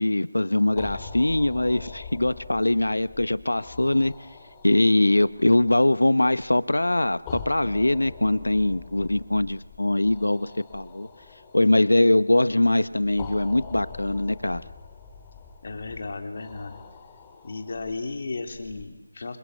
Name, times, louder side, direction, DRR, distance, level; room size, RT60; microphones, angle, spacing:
voice 1, 0.0-4.1 4.6-11.1 11.5-14.6, left 1 dB, 90° left, 16 dB, 1.2 m, -22 dB
sound 1, 0.7-18.8, left 5 dB, 15° left, 2.3 m, -44 dB
voice 2, 15.6-16.8 17.4-19.4, left 3 dB, 45° left, 5 dB, 3.9 m, -34 dB
28.0 x 26.5 x 8.2 m, 1.0 s
figure-of-eight pair, 165°, 0 cm